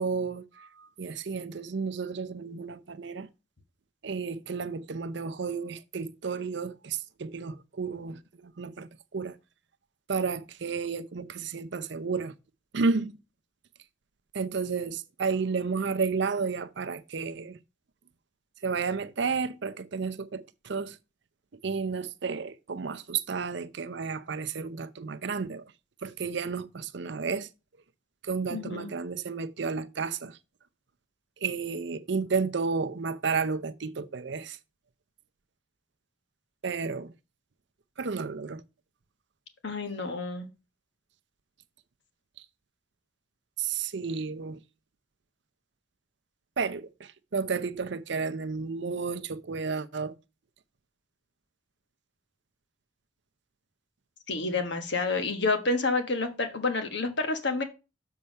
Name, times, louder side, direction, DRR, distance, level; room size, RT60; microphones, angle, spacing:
voice 1, 0.0-3.3 4.0-9.4 10.1-12.3 12.7-13.1 14.3-17.6 18.6-21.0 21.6-25.6 26.0-27.5 28.2-30.4 31.4-34.6 36.6-37.1 38.0-38.6 43.6-44.6 46.6-50.1, right 5 dB, 55° right, 0.6 m, -32 dB
voice 2, 28.5-28.9 39.6-40.5 54.3-57.6, left 3 dB, 55° left, 1.2 m, -29 dB
7.1 x 4.5 x 5.3 m
head